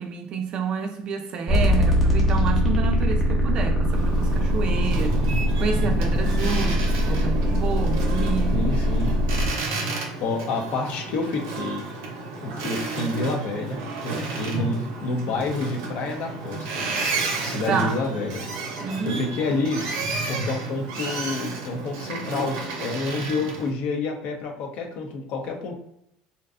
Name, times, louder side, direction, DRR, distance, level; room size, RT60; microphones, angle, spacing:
voice 1, 0.0-8.7 17.7-18.0 18.8-19.2, right 5 dB, 45° right, 0.4 m, -29 dB
sound 1, 1.5-9.5, equal, 5° left, 0.8 m, -22 dB
Boat Water vehicle, 3.9-23.7, right 3 dB, 85° right, 0.6 m, -32 dB
voice 2, 8.5-9.1 10.2-11.8 12.4-16.9 17.4-18.4 19.0-19.8 20.3-25.8, left 3 dB, 60° left, 0.6 m, -28 dB
2.6 x 2.2 x 2.4 m
cardioid pair, 125°, 2 cm